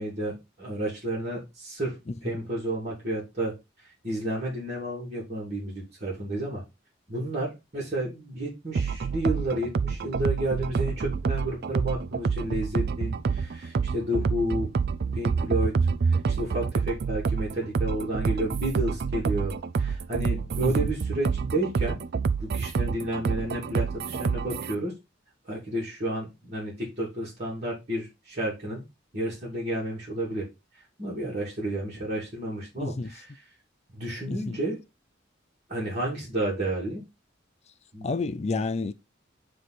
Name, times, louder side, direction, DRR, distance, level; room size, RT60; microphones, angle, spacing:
voice 1, 0.0-2.0 2.2-3.5 3.8-6.6 7.1-14.7 15.1-15.7 16.0-22.0 22.4-24.9 25.4-28.8 29.1-30.5 31.0-33.2 33.9-34.8 35.7-37.0 37.9-38.1, right 1 dB, 35° right, 2.7 m, -31 dB
voice 2, 2.1-2.4 20.6-20.9 32.8-33.1 34.3-34.6 38.0-38.9, left 3 dB, 35° left, 0.4 m, -30 dB
sound 1, 8.8-24.8, right 5 dB, 55° right, 0.4 m, -27 dB
9.2 x 3.3 x 4.1 m
head